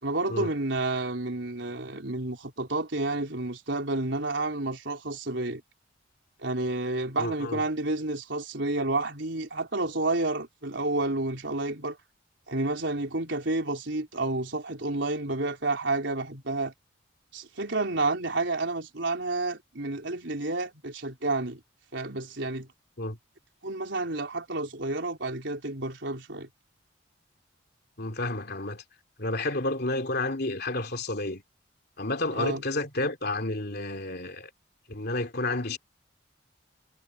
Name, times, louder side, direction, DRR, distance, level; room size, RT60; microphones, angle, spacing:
voice 1, 0.0-5.6 6.4-12.0 12.5-16.7 17.3-21.6 21.9-22.7 23.6-26.5 32.3-32.6, right 2 dB, 65° right, 4.2 m, -30 dB
voice 2, 7.2-7.6 23.0-23.2 28.0-28.8 29.2-31.4 32.0-34.5 34.9-35.8, left 2 dB, 55° left, 3.3 m, -30 dB
head